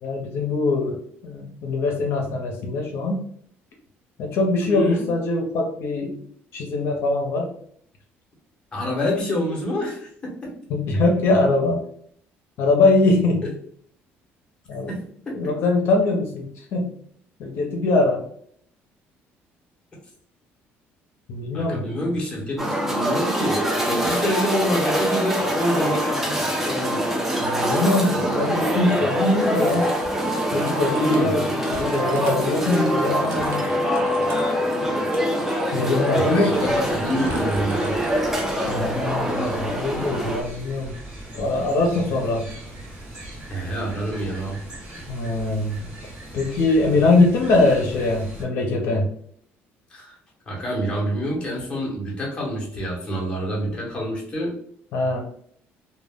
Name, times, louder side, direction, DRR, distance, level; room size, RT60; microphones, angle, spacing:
voice 1, 0.0-1.0 1.2-3.2 4.2-6.2 6.5-7.5 10.7-11.8 12.6-13.5 14.7-15.0 15.3-16.9 17.4-18.2 21.3-22.1 22.5-22.7 27.4-29.8 30.5-33.7 35.7-36.7 38.7-40.9 41.3-42.5 45.1-45.8 46.3-49.1 54.9-55.2, left 2 dB, 65° left, 1 dB, 0.5 m, -22 dB
voice 2, 4.7-5.1 8.7-10.5 14.9-15.0 21.5-27.1 31.0-31.3 36.1-38.0 43.5-44.6 49.9-50.1 50.5-54.5, equal, 20° left, -3 dB, 0.8 m, -27 dB
sound 1, 22.6-40.4, equal, 10° right, 0.4 m, -24 dB
Typing, 29.6-38.6, equal, 60° right, 0.6 m, -43 dB
sound 2, 36.5-48.4, right 1 dB, 30° right, 1.3 m, -40 dB
2.1 x 2.0 x 3.3 m, 0.62 s
cardioid pair, 150°, 5 cm